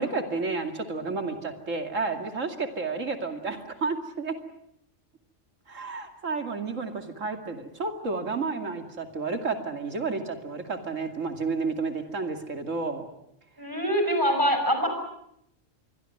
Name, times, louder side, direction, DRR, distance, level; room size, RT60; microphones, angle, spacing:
voice 1, 0.0-4.4 5.7-13.1, right 4 dB, 90° right, 5 dB, 2.8 m, -31 dB
voice 2, 13.6-14.9, equal, 15° right, 5 dB, 5.9 m, -24 dB
27.0 x 22.0 x 7.8 m, 0.77 s
omnidirectional pair, 1.3 m